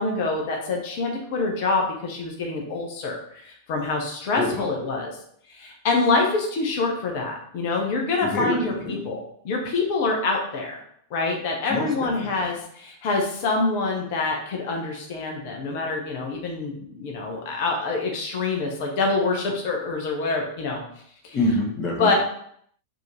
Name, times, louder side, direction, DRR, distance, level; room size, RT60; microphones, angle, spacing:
voice 1, 0.0-5.2 5.5-10.8 11.1-20.8 21.2-21.4 22.0-22.1, left 3 dB, 50° left, 1 dB, 0.9 m, -26 dB
voice 2, 8.2-9.0 11.7-12.3 21.3-22.1, left 2 dB, 30° left, -1 dB, 1.3 m, -26 dB
4.6 x 2.9 x 3.1 m, 0.67 s
figure-of-eight pair, 90°, 0 cm